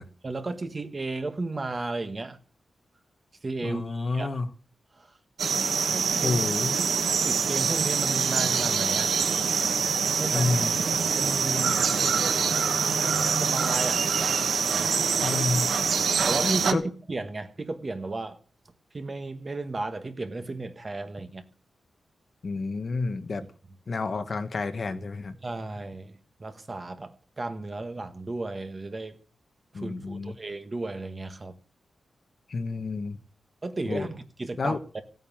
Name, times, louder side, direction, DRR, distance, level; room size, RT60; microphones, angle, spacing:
voice 1, 0.2-2.4 3.4-4.3 4.9-5.1 5.9-6.4 6.8-9.2 10.2-10.8 11.2-12.4 13.4-14.2 16.2-16.8 17.1-18.4 18.9-21.4 25.4-29.2 29.7-31.6 33.6-35.0, right 3 dB, 25° right, 1.4 m, -34 dB
voice 2, 3.6-4.5 6.2-6.7 10.3-10.8 12.9-13.0 15.2-15.7 16.4-16.8 22.4-23.4 23.9-25.4 29.7-30.3 32.5-33.2 33.9-34.1 34.6-34.8, left 3 dB, 40° left, 1.3 m, -29 dB
sound 1, 5.4-16.7, right 6 dB, 80° right, 1.4 m, -25 dB
16.0 x 9.4 x 7.2 m
wide cardioid pair, 170°, 0 cm